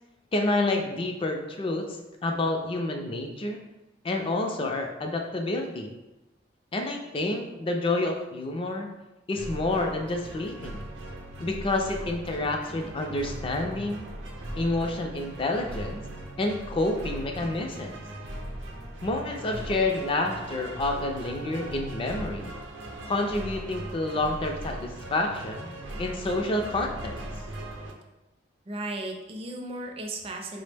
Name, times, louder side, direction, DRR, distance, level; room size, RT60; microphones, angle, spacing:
voice 1, 0.3-2.0 2.2-3.6 4.0-5.9 6.7-8.9 9.3-10.8 11.4-14.1 14.6-16.0 16.4-18.0 19.0-22.5 23.1-25.7 26.0-27.1, left 2 dB, 30° left, 3 dB, 0.4 m, -29 dB
sound 1, 9.3-27.9, right 1 dB, 85° right, 0.6 m, -39 dB
voice 2, 28.7-30.6, right 2 dB, 30° right, 2 dB, 0.4 m, -35 dB
4.5 x 2.0 x 3.3 m, 1.0 s
head